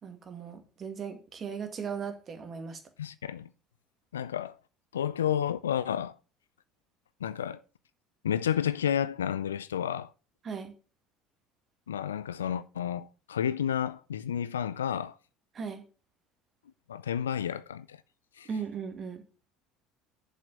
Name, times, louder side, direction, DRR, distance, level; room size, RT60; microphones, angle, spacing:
voice 1, 0.0-2.8 10.4-10.7 15.5-15.8 18.5-19.2, right 6 dB, 40° right, 2.1 m, -37 dB
voice 2, 3.0-3.5 4.1-4.6 4.9-6.1 7.2-7.6 8.2-10.1 11.9-15.2 16.9-18.0 18.4-18.5, left 9 dB, 85° left, 0.4 m, -31 dB
7.4 x 5.3 x 7.4 m
hypercardioid pair, 65°, 0 cm